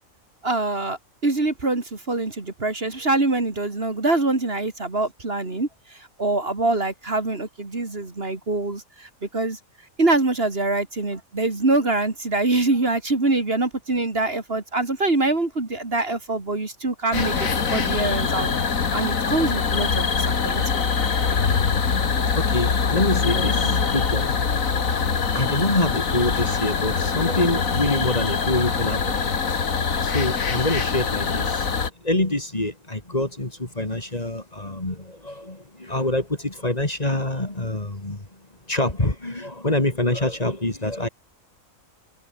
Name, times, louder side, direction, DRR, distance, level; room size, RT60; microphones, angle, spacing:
voice 1, 0.4-9.6 10.0-18.5 18.9-20.9, right 2 dB, 45° right, 3.0 m, -24 dB
sound 1, 17.1-31.9, left 5 dB, 90° left, 2.4 m, -23 dB
voice 2, 22.2-24.4 25.3-29.3 29.9-31.7 32.0-38.3 38.7-41.1, left 1 dB, 30° left, 3.1 m, -26 dB
open air
omnidirectional pair, 1.4 m